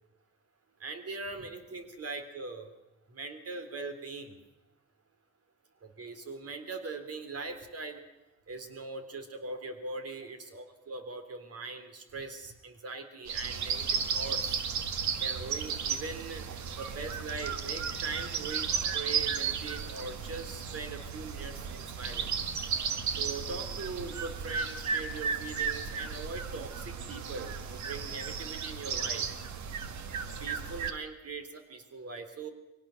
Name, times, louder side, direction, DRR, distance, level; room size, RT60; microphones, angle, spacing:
voice 1, 0.8-2.7 3.1-4.4 5.8-8.0 8.5-14.7 15.2-16.5 16.8-18.7 18.9-22.5 23.1-29.3 30.4-32.5, right 3 dB, 50° right, 7 dB, 3.5 m, -41 dB
sound 1, 13.3-30.9, right 6 dB, 70° right, 1.8 m, -34 dB
23.0 x 18.0 x 6.5 m, 1.0 s
cardioid pair, 90°, 30 cm